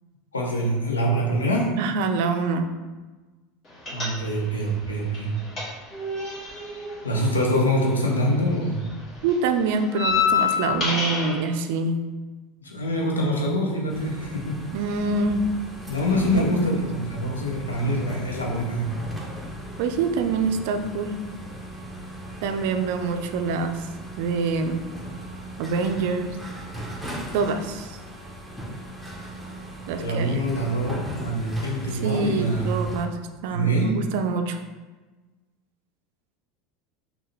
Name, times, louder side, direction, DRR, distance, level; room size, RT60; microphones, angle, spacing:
voice 1, 0.3-1.7 3.9-5.3 7.0-8.8 12.6-14.6 15.9-18.9 30.0-32.8 33.5-34.0, equal, 85° left, -1 dB, 0.8 m, -25 dB
voice 2, 1.8-2.7 9.2-11.9 14.7-15.5 16.3-16.8 19.8-21.2 22.4-23.9 24.2-24.8 25.6-26.4 27.3-28.0 29.9-30.4 31.9-33.1 33.4-34.6, right 4 dB, 60° right, 7 dB, 0.4 m, -25 dB
sound 1, 3.9-4.6 4.9-8.3 8.5-11.4, left 5 dB, 35° left, 1.5 m, -27 dB
sound 2, 13.9-33.0, right 1 dB, ahead, 0.8 m, -38 dB
5.5 x 2.3 x 3.2 m, 1.3 s
figure-of-eight pair, 80°, 0 cm